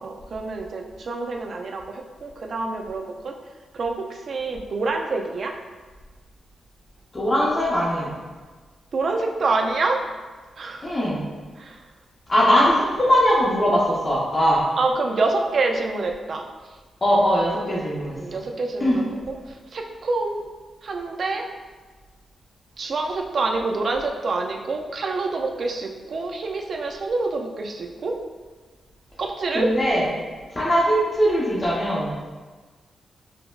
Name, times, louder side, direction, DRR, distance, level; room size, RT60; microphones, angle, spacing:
voice 1, 0.0-3.3 3.7-5.5 8.9-10.0 10.6-10.9 11.6-11.8 14.8-16.4 18.2-20.4 20.8-21.4 22.8-28.1 29.2-29.7, right 3 dB, 55° right, 2 dB, 0.3 m, -27 dB
voice 2, 7.1-8.1 10.8-11.2 12.3-14.6 17.0-18.2 18.8-19.0 29.5-30.1 30.5-32.3, equal, 30° left, -5 dB, 0.6 m, -20 dB
5.0 x 2.0 x 2.3 m, 1.4 s
cardioid pair, 105°, 0 cm